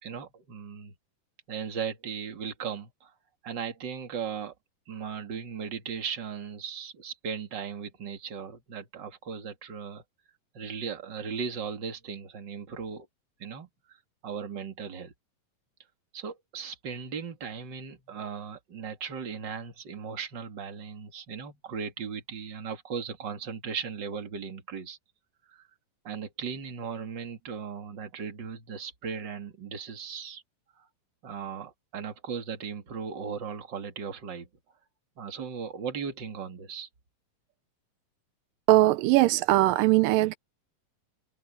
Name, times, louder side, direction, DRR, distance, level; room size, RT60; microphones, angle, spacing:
voice 1, 0.0-0.9 1.5-3.1 3.4-4.5 4.9-10.0 10.5-13.1 13.4-14.0 14.2-15.1 16.1-25.0 25.5-25.6 26.0-30.4 31.2-34.5 35.2-36.9, right 6 dB, 35° right, 2.5 m, -37 dB
voice 2, 38.7-40.4, right 17 dB, 85° right, 2.3 m, -20 dB
open air
omnidirectional pair, 4.0 m